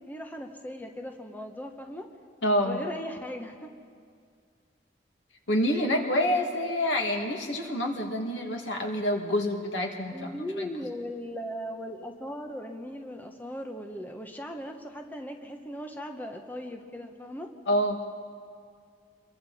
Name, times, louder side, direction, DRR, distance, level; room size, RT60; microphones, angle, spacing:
voice 1, 0.0-2.1 2.6-3.7 10.1-17.5, equal, 10° left, 3 dB, 1.1 m, -38 dB
voice 2, 2.4-2.8 5.5-10.3 10.6-10.7 17.7-18.0, equal, 90° left, 2 dB, 2.5 m, -27 dB
28.0 x 23.0 x 4.3 m, 2.2 s
head